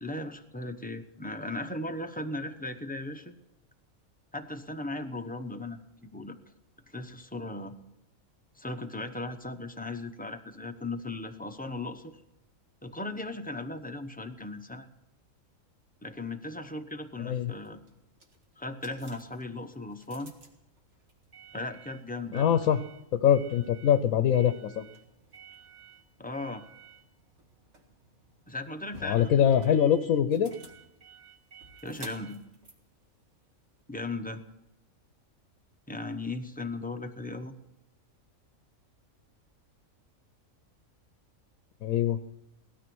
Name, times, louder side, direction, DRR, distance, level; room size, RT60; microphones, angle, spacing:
voice 1, 0.0-3.3 4.3-5.8 6.1-6.4 6.9-7.8 8.6-12.2 12.8-14.9 16.0-17.8 18.6-20.3 21.5-22.5 26.2-26.6 28.5-29.3 29.7-29.8 31.8-32.4 33.9-34.4 35.9-37.6, left 2 dB, 10° left, 5 dB, 0.7 m, -37 dB
voice 2, 17.2-17.5 22.3-22.8 23.1-24.8 29.0-30.5 41.8-42.2, left 9 dB, 75° left, 10 dB, 1.1 m, -23 dB
sound 1, 17.4-33.8, right 4 dB, 55° right, 2.2 m, -53 dB
17.5 x 13.0 x 6.2 m, 0.92 s
omnidirectional pair, 1.4 m